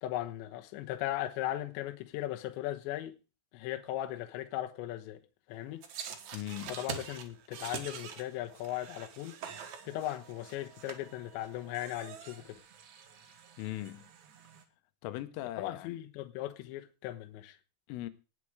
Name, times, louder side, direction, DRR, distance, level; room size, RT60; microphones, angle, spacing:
voice 1, 0.0-3.1 3.5-5.2 5.5-5.8 6.7-9.4 9.8-12.6 15.6-17.6, left 14 dB, 75° left, 3.2 m, -38 dB
sound 1, 5.8-14.6, right 7 dB, 65° right, 1.9 m, -46 dB
voice 2, 6.3-6.8 13.6-14.0 15.0-16.0 17.9-18.1, left 15 dB, 90° left, 3.6 m, -39 dB
18.5 x 7.6 x 4.8 m
omnidirectional pair, 5.6 m